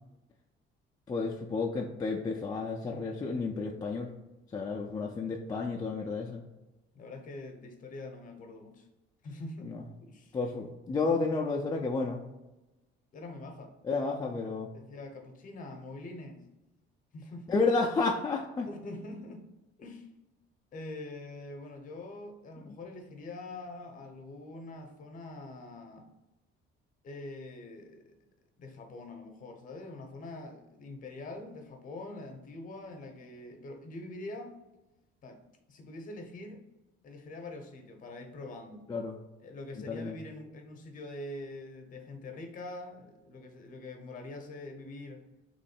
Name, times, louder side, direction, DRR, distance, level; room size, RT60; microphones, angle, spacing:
voice 1, 1.1-4.1 4.5-6.4 9.6-9.8 10.3-12.2 13.8-14.7 17.5-18.7 38.9-39.2 39.9-40.2, left 3 dB, 20° left, 0 dB, 0.3 m, -31 dB
voice 2, 6.9-8.9 9.2-9.7 10.0-10.4 13.1-13.7 14.7-16.5 17.1-17.6 18.7-19.5 19.8-20.1 20.7-26.1 27.0-28.2 28.6-34.6 35.2-35.4 35.7-36.6 37.0-38.8 39.4-45.3, left 2 dB, 40° left, 4 dB, 0.7 m, -44 dB
3.6 x 3.1 x 4.2 m, 1.0 s
cardioid pair, 160°, 20 cm